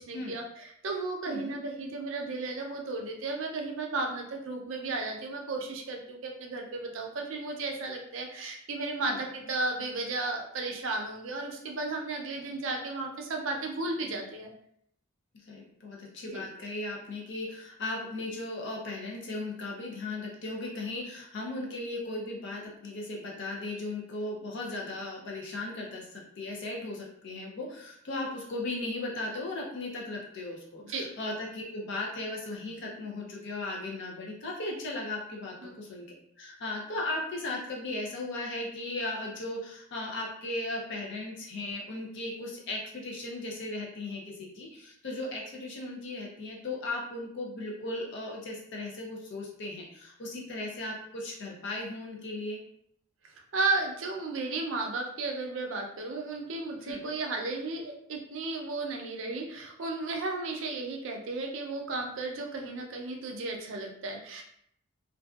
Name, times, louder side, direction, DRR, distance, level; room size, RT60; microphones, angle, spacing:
voice 1, 0.0-14.5 16.3-16.4 30.8-31.1 35.6-35.7 53.5-64.4, right 3 dB, 65° right, 1 dB, 0.5 m, -34 dB
voice 2, 1.3-1.6 9.0-9.2 15.5-36.1 36.4-52.6 56.8-57.0, left 2 dB, 60° left, -2 dB, 0.5 m, -37 dB
2.6 x 2.2 x 2.3 m, 0.69 s
head